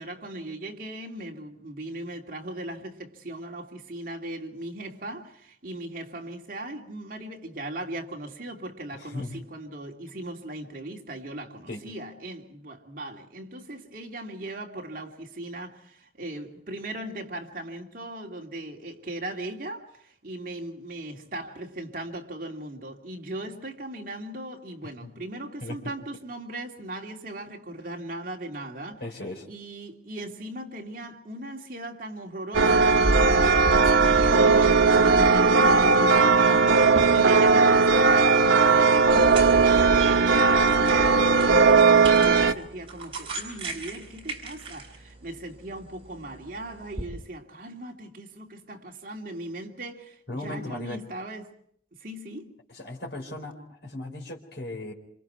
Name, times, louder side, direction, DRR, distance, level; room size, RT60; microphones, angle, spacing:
voice 1, 0.0-29.0 29.5-51.5 52.0-52.6, right 1 dB, 45° right, 2.7 m, -38 dB
voice 2, 8.9-9.4 11.7-11.9 25.0-25.1 25.6-25.9 29.0-29.5 50.3-51.0 52.7-54.9, left 2 dB, 65° left, 4.4 m, -37 dB
sound 1, 32.5-42.5, right 4 dB, 85° right, 1.2 m, -18 dB
sound 2, 36.7-47.1, right 3 dB, 30° right, 4.7 m, -40 dB
27.5 x 27.0 x 4.6 m
head